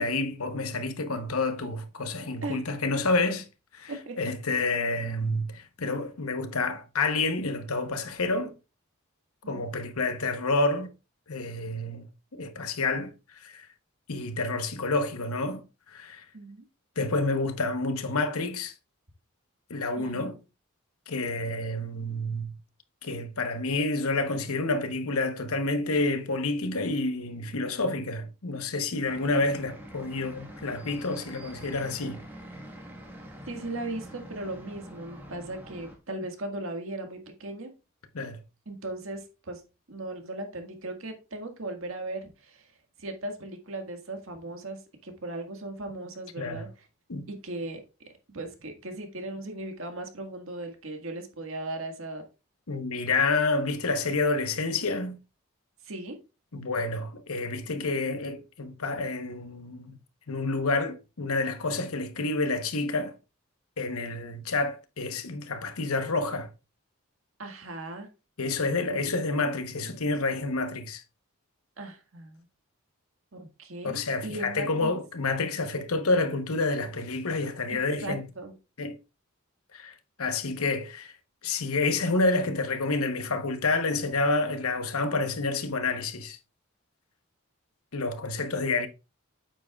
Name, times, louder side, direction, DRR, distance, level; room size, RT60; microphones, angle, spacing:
voice 1, 0.0-3.5 3.7-3.9 4.2-8.5 9.5-10.9 11.3-12.1 12.3-13.1 13.4-13.7 14.1-15.6 15.9-16.2 17.0-18.7 19.7-20.4 21.1-22.6 23.0-32.2 38.1-38.4 46.4-46.7 47.1-47.3 52.7-55.2 56.5-60.0 60.3-63.1 63.8-66.5 68.4-71.0 73.8-78.3 78.8-79.0 79.7-81.1 81.4-86.4 87.9-88.9, left 3 dB, 90° left, 1.0 m, -29 dB
voice 2, 16.3-16.6 20.0-20.4 33.5-37.7 38.7-39.6 39.9-42.7 43.0-46.7 47.3-47.8 48.3-52.2 55.8-56.2 67.4-68.1 68.9-69.1 71.8-72.5 73.3-74.9 77.7-78.5, right 2 dB, 70° right, 1.7 m, -37 dB
sound 1, 29.0-36.0, equal, 10° right, 1.4 m, -45 dB
8.8 x 7.5 x 2.4 m
head